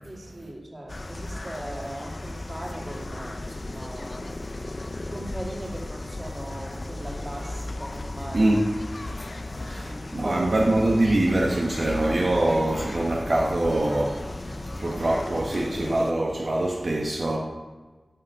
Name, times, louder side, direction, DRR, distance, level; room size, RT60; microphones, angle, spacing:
voice 1, 0.0-4.4 5.1-8.5 9.9-10.0 10.2-10.7, right 1 dB, 25° right, -1 dB, 2.6 m, -39 dB
sound 1, 0.9-16.1, left 2 dB, 40° left, 0.6 m, -35 dB
voice 2, 8.3-8.7 9.5-17.4, right 1 dB, 60° right, -2 dB, 1.3 m, -24 dB
9.9 x 6.2 x 8.4 m, 1.3 s
wide cardioid pair, 85°, 0 cm